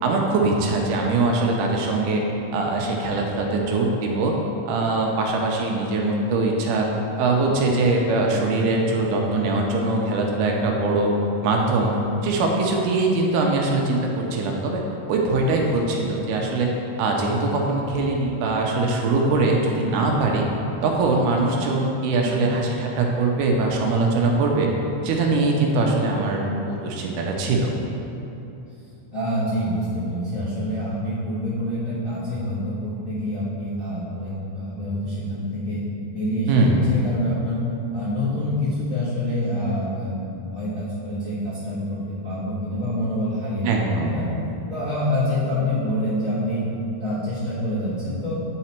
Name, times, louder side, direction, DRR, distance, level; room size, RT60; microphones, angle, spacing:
voice 1, 0.0-2.2 2.5-4.3 4.7-6.9 7.2-11.1 11.4-12.0 12.2-14.8 15.1-16.7 17.0-20.5 20.8-24.7 25.0-27.7 36.5-36.8 43.6-44.2, right 3 dB, 80° right, 0 dB, 2.1 m, -22 dB
voice 2, 22.2-22.6 29.1-35.8 36.1-37.7 37.9-44.3 44.7-46.6 47.0-48.3, left 1 dB, 45° left, -13 dB, 1.1 m, -26 dB
8.8 x 4.1 x 4.4 m, 2.9 s
omnidirectional pair, 3.9 m